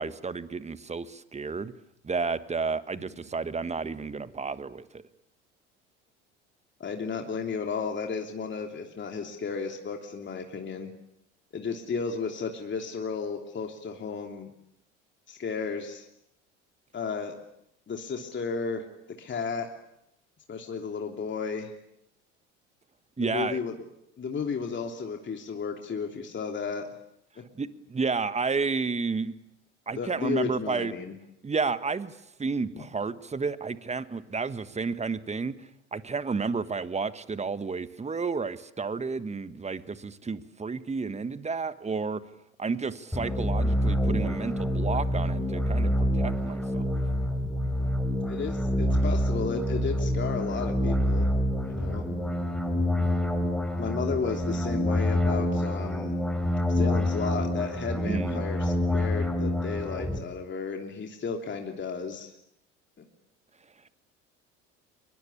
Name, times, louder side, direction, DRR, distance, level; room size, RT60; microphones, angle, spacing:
voice 1, 0.0-1.7 2.0-5.0 23.2-23.6 27.5-29.3 29.9-30.9 31.4-42.2 42.6-46.9 58.0-58.4, right 4 dB, 20° right, 14 dB, 1.5 m, -31 dB
voice 2, 6.8-10.9 11.5-14.5 15.3-16.1 16.9-17.3 17.9-18.8 19.2-19.7 20.5-21.7 23.2-23.7 24.2-26.9 29.9-31.2 32.7-32.8 48.3-51.3 51.7-52.0 53.8-56.2 56.7-62.3, left 5 dB, 30° left, 3 dB, 3.1 m, -33 dB
sound 1, 43.1-60.2, left 1 dB, ahead, 4.0 m, -27 dB
25.0 x 22.5 x 8.6 m, 0.79 s
hypercardioid pair, 70°, 37 cm